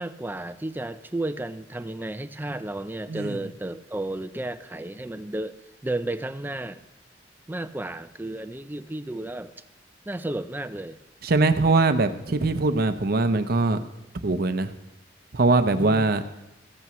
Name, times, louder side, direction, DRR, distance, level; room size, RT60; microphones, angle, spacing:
voice 1, 0.0-5.6 5.8-6.8 7.5-9.5 10.1-11.0 15.8-16.1, right 1 dB, 10° right, 11 dB, 0.4 m, -33 dB
voice 2, 11.2-13.8 14.2-14.7 15.3-16.2, right 3 dB, 55° right, 10 dB, 0.6 m, -22 dB
15.0 x 14.0 x 3.1 m, 0.96 s
head